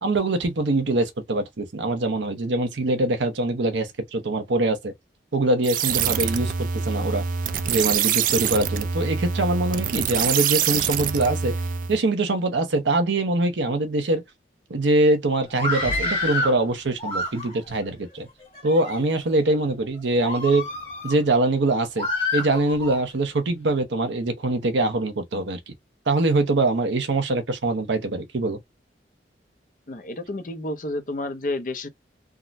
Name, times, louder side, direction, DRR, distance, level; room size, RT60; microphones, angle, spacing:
voice 1, 0.0-4.9 5.3-7.3 7.7-11.5 11.9-14.2 14.7-18.3 18.6-20.7 21.0-22.1 22.3-25.7 26.1-28.6, right 2 dB, 90° right, 0.7 m, -23 dB
sound 1, 5.6-12.0, right 7 dB, 50° right, 0.3 m, -25 dB
Screaming, 15.5-16.6 17.0-17.7 18.4-19.0 19.5-19.7 20.2-21.2 22.0-23.0, left 2 dB, 30° left, 1.5 m, -28 dB
voice 2, 29.9-31.9, left 2 dB, 45° left, 0.6 m, -30 dB
3.6 x 2.1 x 2.6 m
head